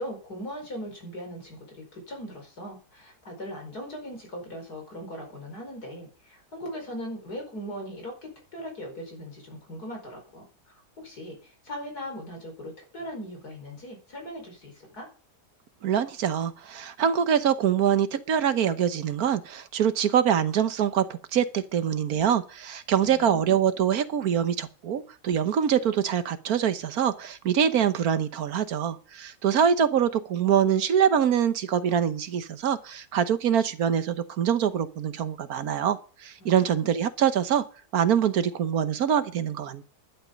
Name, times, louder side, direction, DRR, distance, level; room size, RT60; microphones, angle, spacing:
voice 1, 0.0-10.4 11.0-15.1 23.0-23.6 36.4-36.9, equal, 65° left, 3 dB, 5.5 m, -39 dB
voice 2, 15.8-37.6 37.9-39.8, right 8 dB, 65° right, 11 dB, 1.4 m, -24 dB
11.5 x 11.0 x 5.2 m, 0.38 s
omnidirectional pair, 1.8 m